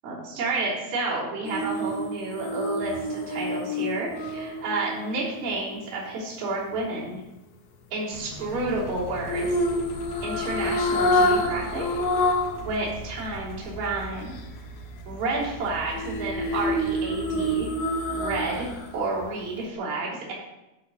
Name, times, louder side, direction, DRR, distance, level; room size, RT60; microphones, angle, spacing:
voice 1, 0.0-7.2 7.9-9.7 10.2-12.0 12.6-14.4 15.1-17.7 18.1-18.7 18.9-20.3, right 2 dB, 45° right, -8 dB, 4.3 m, -30 dB
sound 1, 1.5-5.7 9.3-12.6 13.0-13.1 15.9-18.8 19.2-19.3, left 1 dB, 90° left, 1.6 m, -27 dB
Engine, 8.1-19.7, equal, 70° left, 2.1 m, -41 dB
13.0 x 4.5 x 5.3 m, 0.96 s
omnidirectional pair, 5.0 m